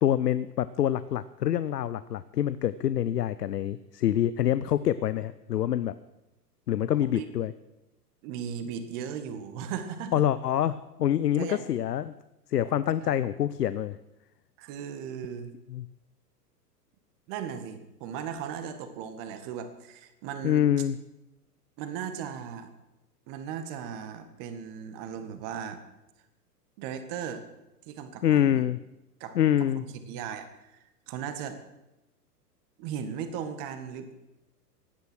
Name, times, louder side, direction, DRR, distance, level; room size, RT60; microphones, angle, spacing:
voice 1, 0.0-5.9 6.7-7.5 10.1-12.1 12.5-14.0 15.7-15.8 20.4-21.0 28.2-28.8 29.4-29.8, left 11 dB, 75° left, 15 dB, 0.7 m, -26 dB
voice 2, 8.2-10.2 11.4-11.6 13.0-13.2 14.6-15.5 17.3-20.6 21.8-22.7 23.3-25.8 26.8-27.4 27.8-28.6 29.2-29.4 29.8-30.8 31.1-31.6 32.8-34.1, right 8 dB, 40° right, 9 dB, 1.7 m, -37 dB
16.5 x 9.6 x 6.2 m, 0.94 s
figure-of-eight pair, 105°, 48 cm